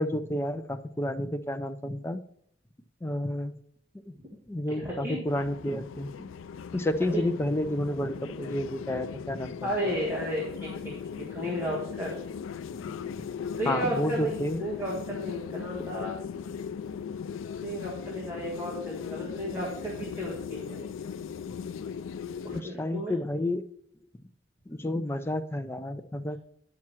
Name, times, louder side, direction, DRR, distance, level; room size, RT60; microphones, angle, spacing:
voice 1, 0.0-2.2 3.0-3.6 4.1-4.2 4.5-6.3 6.7-9.9 12.9-13.2 13.7-14.7 22.5-23.6 24.7-26.4, left 1 dB, 10° left, 8 dB, 0.4 m, -31 dB
voice 2, 4.8-5.2 7.1-7.3 9.6-12.2 13.6-16.1 17.6-20.8 22.4-23.2, equal, 15° right, -4 dB, 1.6 m, -33 dB
sound 1, 5.3-22.6, left 7 dB, 80° left, 0.4 m, -38 dB
9.7 x 6.1 x 4.5 m, 0.69 s
head